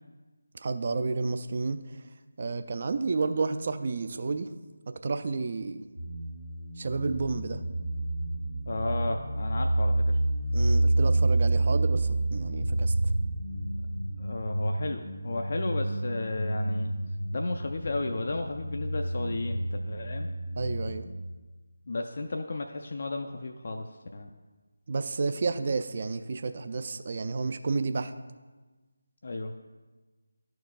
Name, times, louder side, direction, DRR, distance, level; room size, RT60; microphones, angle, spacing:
voice 1, 0.5-1.8 2.4-4.5 4.9-5.8 6.8-7.6 10.5-12.9 20.6-21.1 24.9-28.1, right 4 dB, 40° right, 10 dB, 0.3 m, -31 dB
sound 1, 6.0-21.0, right 2 dB, 80° right, 0.9 m, -29 dB
voice 2, 8.7-10.2 14.2-16.9 17.3-20.3 21.9-24.3 29.2-29.5, left 2 dB, 45° left, 3 dB, 0.3 m, -34 dB
11.5 x 4.6 x 2.3 m, 1.3 s
figure-of-eight pair, 160°, 0 cm